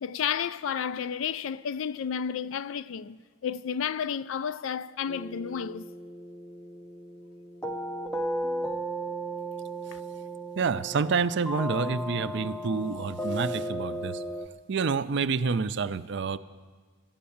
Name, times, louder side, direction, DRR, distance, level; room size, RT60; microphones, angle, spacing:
voice 1, 0.0-5.9 9.9-10.0, left 7 dB, 70° left, 0.4 m, -32 dB
sound 1, 5.1-14.5, right 1 dB, 5° left, 0.5 m, -35 dB
voice 2, 10.6-14.2 14.7-16.4, right 5 dB, 55° right, 0.4 m, -28 dB
13.0 x 10.5 x 8.5 m
head